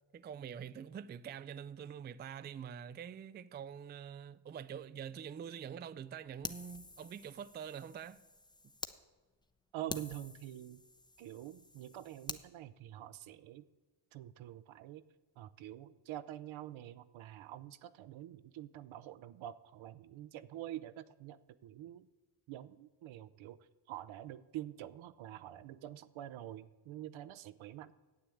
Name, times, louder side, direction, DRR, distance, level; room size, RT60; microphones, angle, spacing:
voice 1, 0.1-8.2, right 8 dB, 25° right, 0.3 m, -45 dB
Fire, 6.4-9.0 9.4-9.5 9.9-12.4, left 2 dB, 10° left, 0.7 m, -47 dB
voice 2, 9.7-10.8 11.2-13.6 14.1-15.0 15.4-22.1 22.5-23.6 23.9-27.9, right 12 dB, 70° right, 0.8 m, -46 dB
9.9 x 8.5 x 8.4 m
cardioid pair, 80°, 49 cm